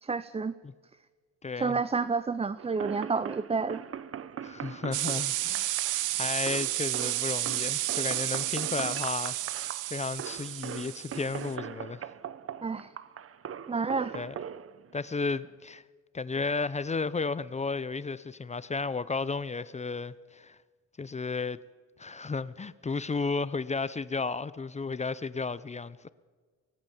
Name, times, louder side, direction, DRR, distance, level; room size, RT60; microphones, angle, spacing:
voice 1, 0.0-0.5 1.6-3.8 12.6-12.9 13.7-14.2, right 4 dB, 20° right, 0.6 m, -30 dB
voice 2, 1.4-1.8 4.4-5.8 6.1-12.1 14.1-14.3 14.9-15.8 16.1-20.6 21.0-21.6 22.0-26.1, left 4 dB, 25° left, 0.7 m, -33 dB
sound 1, 2.6-15.5, right 8 dB, 50° right, 0.9 m, -41 dB
sound 2, 4.9-11.5, right 15 dB, 85° right, 0.8 m, -32 dB
24.0 x 18.5 x 7.2 m
cardioid pair, 90°, 30 cm